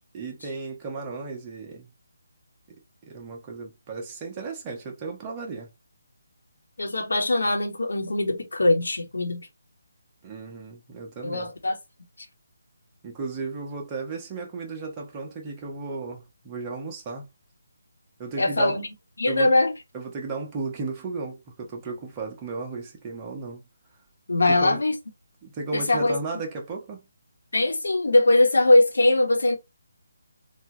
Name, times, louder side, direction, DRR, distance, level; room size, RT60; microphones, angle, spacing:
voice 1, 0.1-1.9 3.0-5.7 10.2-11.5 13.0-17.3 18.2-18.8 19.3-19.5 19.9-23.6 24.5-24.8 25.4-27.0, right 4 dB, 20° right, 0.9 m, -34 dB
voice 2, 6.8-9.4 11.2-11.8 18.4-18.9 19.2-19.7 24.3-24.9 25.7-26.2 27.5-29.6, left 2 dB, 75° left, 1.0 m, -21 dB
3.2 x 2.3 x 2.9 m
figure-of-eight pair, 155°, 0 cm